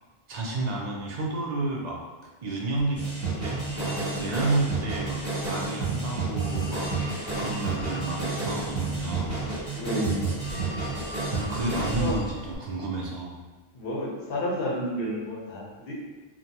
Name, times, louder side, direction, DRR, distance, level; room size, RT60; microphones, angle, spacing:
voice 1, 0.3-2.0 2.4-3.0 3.4-5.2 5.5-6.9 7.4-9.4 11.3-13.3, right 2 dB, 55° right, -3 dB, 0.5 m, -30 dB
Telephone, 2.8-12.6, left 1 dB, 45° left, 0.5 m, -41 dB
sound 1, 2.9-12.1, right 4 dB, 15° left, 0.9 m, -30 dB
voice 2, 9.7-10.4 11.8-12.2 13.7-15.9, equal, 65° left, -4 dB, 0.9 m, -31 dB
2.6 x 2.1 x 2.8 m, 1.2 s
omnidirectional pair, 1.1 m